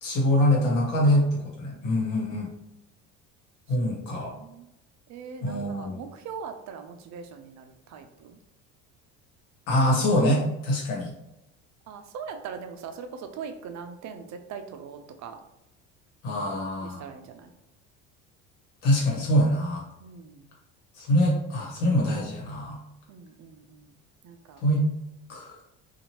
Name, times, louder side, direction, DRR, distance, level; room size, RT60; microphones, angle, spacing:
voice 1, 0.0-2.5 3.7-4.3 5.4-6.0 9.7-11.1 16.2-17.0 18.8-19.8 21.0-22.8 24.6-24.9 25.3-25.6, equal, 80° left, -2 dB, 1.2 m, -24 dB
voice 2, 1.7-2.1 3.7-4.7 5.1-8.4 11.9-15.4 16.8-17.5 20.0-20.5 23.1-23.9 24.2-24.6, right 6 dB, 50° right, 6 dB, 0.5 m, -41 dB
2.7 x 2.5 x 2.9 m, 0.89 s
supercardioid pair, 75°, 37 cm